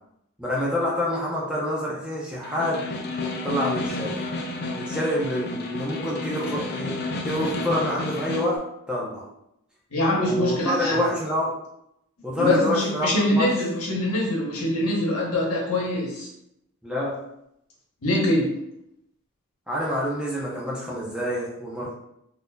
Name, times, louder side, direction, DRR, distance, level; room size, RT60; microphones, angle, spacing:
voice 1, 0.4-2.8 3.4-4.1 4.8-7.0 7.2-9.2 10.2-11.5 12.2-13.5 16.8-17.2 19.7-21.9, equal, 5° right, -5 dB, 0.6 m, -27 dB
Snare drum, 2.4-8.6, left 2 dB, 45° left, 0.4 m, -31 dB
voice 2, 9.9-11.0 12.3-16.3 18.0-18.6, left 1 dB, 85° left, -3 dB, 1.1 m, -24 dB
4.0 x 2.6 x 2.3 m, 0.78 s
head